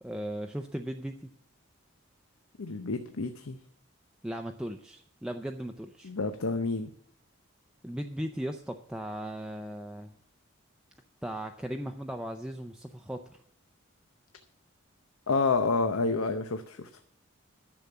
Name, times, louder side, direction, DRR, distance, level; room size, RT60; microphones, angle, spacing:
voice 1, 0.0-1.3 4.2-6.1 7.8-10.1 11.2-13.4, equal, 5° right, 4 dB, 0.5 m, -37 dB
voice 2, 2.6-3.6 6.0-6.9 15.3-16.9, left 3 dB, 85° left, 8 dB, 0.8 m, -29 dB
10.5 x 7.0 x 8.3 m, 0.64 s
head